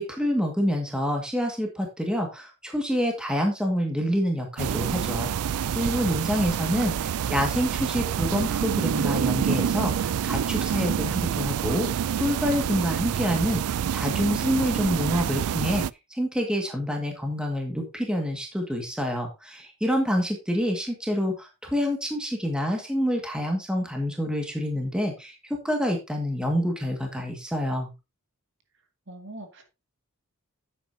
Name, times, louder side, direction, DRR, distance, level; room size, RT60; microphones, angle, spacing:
voice 1, 0.0-15.9 16.1-25.4 25.6-27.9, equal, 5° right, 2 dB, 1.9 m, -27 dB
sound 1, 4.6-15.9, right 8 dB, 85° right, 0.4 m, -27 dB
voice 2, 29.1-29.6, right 1 dB, 55° right, 5 dB, 2.3 m, -43 dB
10.5 x 8.5 x 2.8 m, 0.25 s
head